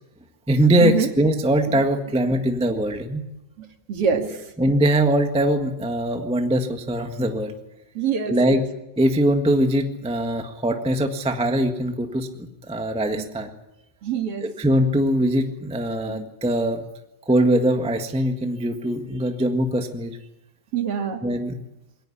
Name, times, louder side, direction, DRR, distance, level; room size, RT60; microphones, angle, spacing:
voice 1, 0.5-3.2 4.6-7.6 8.2-8.7 9.0-13.6 14.4-16.8 17.3-20.2 21.2-21.5, right 1 dB, 5° right, 5 dB, 0.4 m, -22 dB
voice 2, 3.9-4.4 8.0-8.6 14.0-14.4 16.1-16.2 20.7-21.2, right 7 dB, 50° right, 5 dB, 2.8 m, -25 dB
22.0 x 18.0 x 9.9 m, 0.92 s
omnidirectional pair, 3.5 m